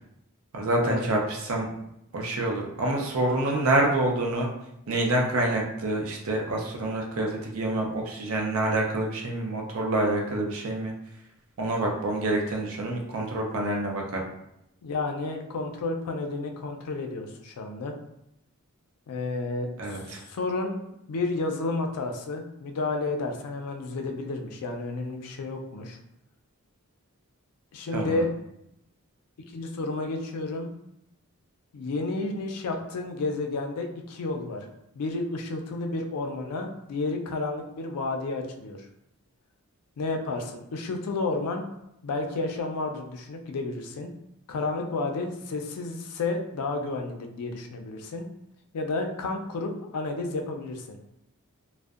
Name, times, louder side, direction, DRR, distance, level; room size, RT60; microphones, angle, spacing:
voice 1, 0.5-1.7 2.1-4.5 4.9-10.9 11.6-14.2 19.8-20.2 27.9-28.2, right 2 dB, 65° right, 0 dB, 0.5 m, -27 dB
voice 2, 14.8-17.9 19.1-26.0 27.7-28.3 29.5-30.7 31.7-34.7 35.0-38.8 40.0-41.6 42.0-44.1 44.5-48.2 48.7-51.0, left 3 dB, 85° left, 4 dB, 0.4 m, -31 dB
2.5 x 2.0 x 2.3 m, 0.80 s
head